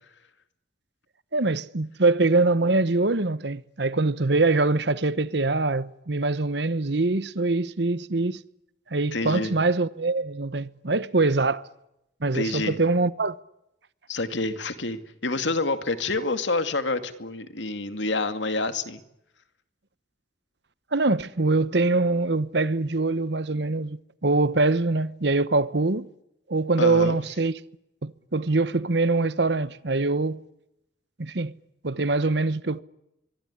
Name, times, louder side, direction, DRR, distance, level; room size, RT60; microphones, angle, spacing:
voice 1, 1.3-8.4 8.9-11.7 12.2-13.4 20.9-26.1 26.5-27.6 28.0-30.4 31.2-31.5 31.8-32.8, right 3 dB, 65° right, 1.1 m, -23 dB
voice 2, 9.1-9.5 12.3-12.8 14.1-19.0 26.8-27.2, left 2 dB, 80° left, 2.3 m, -28 dB
25.0 x 23.5 x 9.9 m
head